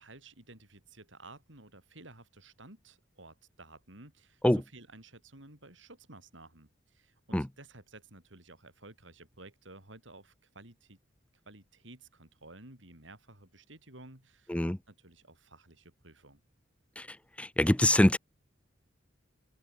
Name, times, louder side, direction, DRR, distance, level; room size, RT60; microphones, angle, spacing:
voice 1, 0.0-11.0 11.5-16.4, right 2 dB, 70° right, 5.9 m, -53 dB
voice 2, 17.4-18.2, left 1 dB, 5° left, 0.5 m, -23 dB
head